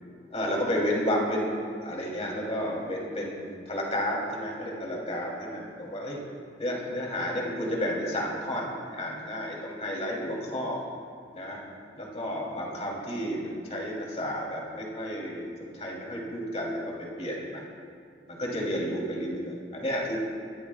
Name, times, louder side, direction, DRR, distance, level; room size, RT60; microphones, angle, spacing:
voice 1, 0.3-1.5 1.8-6.2 6.6-10.8 11.3-11.6 12.0-17.6 18.3-20.2, equal, 35° left, -3 dB, 3.2 m, -31 dB
23.0 x 16.0 x 2.4 m, 2.4 s
head